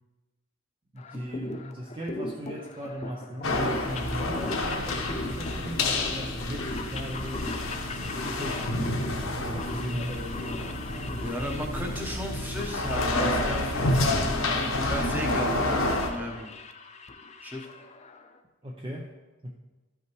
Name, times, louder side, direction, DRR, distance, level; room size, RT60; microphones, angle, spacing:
voice 1, 0.9-7.7 8.3-8.8 9.4-10.8 11.1-11.8 18.6-19.1 19.4-19.5, equal, 25° right, -1 dB, 0.6 m, -38 dB
sound 1, 1.0-18.4, left 2 dB, 30° left, 0.5 m, -40 dB
sound 2, 3.4-16.1, left 2 dB, 75° left, 1.0 m, -29 dB
voice 2, 11.2-16.5 17.4-17.7, equal, 10° right, 0 dB, 1.0 m, -35 dB
12.5 x 5.7 x 3.1 m, 1.2 s
head